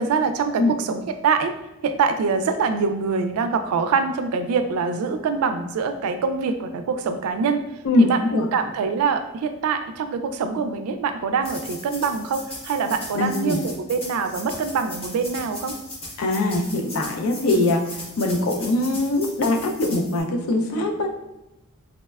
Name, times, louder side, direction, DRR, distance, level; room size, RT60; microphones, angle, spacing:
voice 1, 0.0-1.5 1.8-7.7 8.0-15.8 17.5-17.6, right 5 dB, 85° right, 9 dB, 0.3 m, -24 dB
voice 2, 7.8-8.5 13.1-13.6 16.2-21.1, left 2 dB, 70° left, 3 dB, 0.4 m, -22 dB
sound 1, 11.4-20.2, left 2 dB, 25° left, 0.6 m, -38 dB
4.0 x 2.1 x 2.2 m, 0.95 s
head